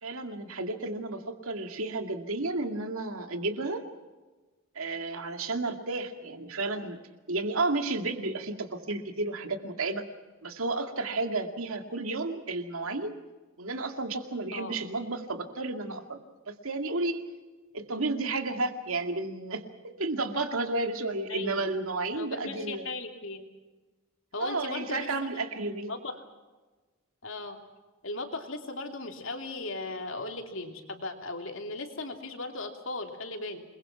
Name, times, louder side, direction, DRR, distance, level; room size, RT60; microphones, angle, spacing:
voice 1, 0.0-3.8 4.8-7.0 7.3-10.0 10.4-13.2 13.6-16.2 16.5-17.2 17.7-22.9 24.4-25.9, right 2 dB, 80° right, 6 dB, 2.3 m, -32 dB
voice 2, 21.3-21.7 22.1-23.5 24.3-25.1 25.3-25.4 25.8-26.2 27.2-27.6 28.0-33.6, left 2 dB, 65° left, 4 dB, 3.0 m, -37 dB
28.0 x 21.5 x 5.9 m, 1.2 s
head